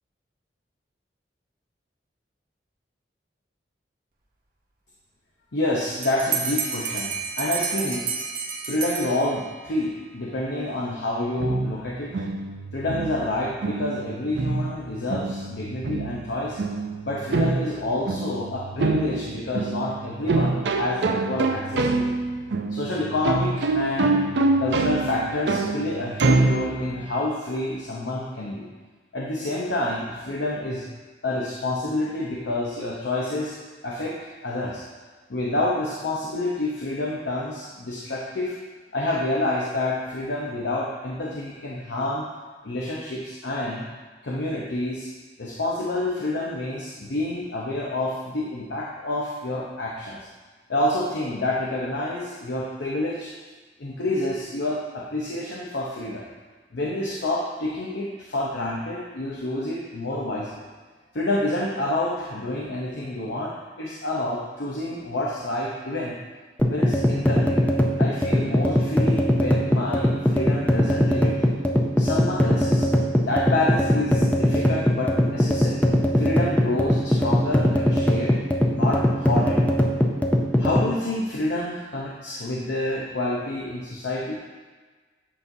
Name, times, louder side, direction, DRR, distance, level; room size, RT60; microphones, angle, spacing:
voice 1, 5.5-8.1 8.6-12.1 12.7-16.6 17.0-22.1 22.7-24.3 24.6-28.7 29.1-30.9 31.2-33.6 33.8-34.2 34.4-34.8 35.3-38.6 38.9-42.3 42.6-43.9 44.2-45.1 45.4-50.3 50.7-53.3 53.8-56.2 56.7-60.6 61.1-66.2 66.7-71.3 72.0-72.9 73.2-75.8 76.2-78.3 78.7-79.6 80.6-84.4, left 1 dB, 75° left, -4 dB, 0.8 m, -28 dB
Bell, 6.0-9.7, right 6 dB, 50° right, 0.8 m, -30 dB
sound 1, 11.4-27.1, right 3 dB, 75° right, 0.5 m, -26 dB
sound 2, 66.6-80.9, equal, 10° left, 0.5 m, -21 dB
8.5 x 5.4 x 2.7 m, 1.4 s
head